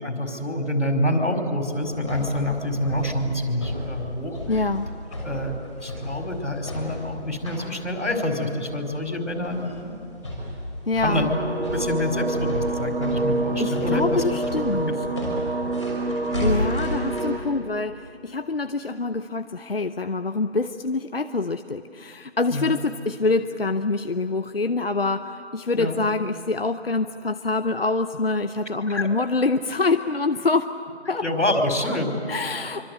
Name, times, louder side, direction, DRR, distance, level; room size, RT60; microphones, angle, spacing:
voice 1, 0.0-4.4 5.2-9.9 11.0-11.3 11.6-14.2 22.5-22.7 25.7-26.0 28.9-29.1 31.2-32.1, left 1 dB, 90° left, 4 dB, 5.0 m, -26 dB
sound 1, 1.7-17.3, left 1 dB, 5° right, 1.5 m, -33 dB
voice 2, 4.5-4.9 10.9-11.3 13.6-15.0 16.4-30.7 31.1-31.2 32.3-32.9, left 3 dB, 55° left, 9 dB, 0.8 m, -25 dB
sound 2, 11.1-17.4, right 2 dB, 60° right, 2.1 m, -27 dB
25.5 x 25.0 x 8.1 m, 2.5 s
figure-of-eight pair, 175°, 34 cm